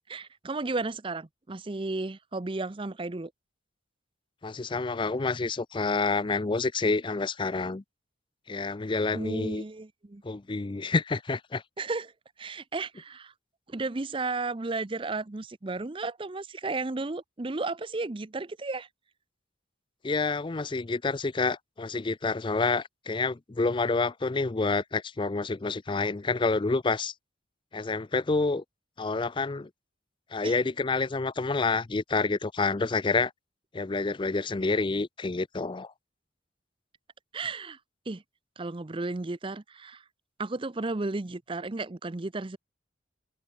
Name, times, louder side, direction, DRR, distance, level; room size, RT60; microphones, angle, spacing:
voice 1, 0.1-3.3 9.1-10.2 11.8-12.1 12.4-13.3 13.7-18.9 30.4-30.7 37.3-37.8 38.1-38.2 38.6-40.0 40.4-42.6, right 3 dB, 25° right, 0.6 m, -33 dB
voice 2, 4.4-7.8 8.5-9.6 10.2-11.6 20.0-27.1 27.7-28.6 29.0-29.7 30.3-33.3 33.7-35.9, left 3 dB, 25° left, 0.4 m, -28 dB
head